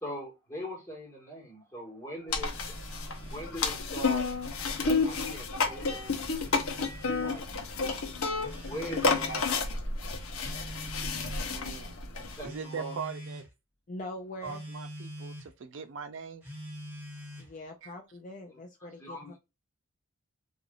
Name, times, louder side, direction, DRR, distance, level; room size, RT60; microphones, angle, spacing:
voice 1, 0.0-4.3 5.0-6.7 7.2-7.5 8.6-10.2 11.5-11.8 12.1-13.0 19.0-19.4, equal, 15° left, 1.4 m, -42 dB
sound 1, 2.3-12.4, left 4 dB, 75° left, 0.7 m, -31 dB
Telephone, 2.4-3.5 4.2-5.5 6.4-7.5 8.4-9.5 10.4-11.5 12.4-13.5 14.4-15.5 16.4-17.6, equal, 10° right, 1.0 m, -45 dB
voice 2, 11.4-12.0 12.4-13.4 14.4-16.5 17.8-17.9, right 6 dB, 60° right, 0.4 m, -41 dB
voice 3, 13.9-14.6 17.4-19.4, left 1 dB, 35° left, 0.4 m, -43 dB
3.2 x 2.5 x 2.3 m
head